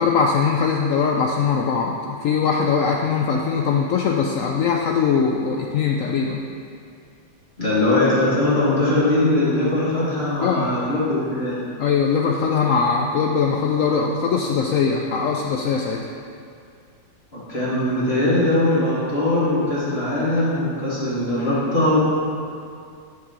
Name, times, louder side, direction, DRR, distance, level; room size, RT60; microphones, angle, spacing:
voice 1, 0.0-6.4 10.4-10.7 11.8-16.1, left 5 dB, 80° left, 1 dB, 0.7 m, -21 dB
voice 2, 7.6-11.5 17.3-22.0, left 1 dB, 35° left, -11 dB, 2.4 m, -20 dB
13.0 x 4.8 x 4.2 m, 2.4 s
omnidirectional pair, 2.0 m